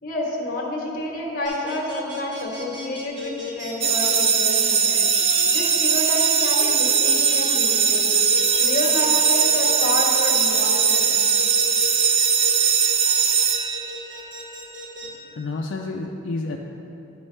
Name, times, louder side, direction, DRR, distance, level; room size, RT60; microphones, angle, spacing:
voice 1, 0.0-5.0 5.5-8.1 8.6-11.2, left 1 dB, 45° left, -2 dB, 1.3 m, -29 dB
sound 1, 1.4-15.1, left 1 dB, 70° right, 1.2 m, -34 dB
sound 2, 3.8-14.2, right 6 dB, 30° right, 0.3 m, -20 dB
voice 2, 15.0-16.6, left 3 dB, 75° left, 0 dB, 0.4 m, -30 dB
11.5 x 5.2 x 3.3 m, 2.9 s
head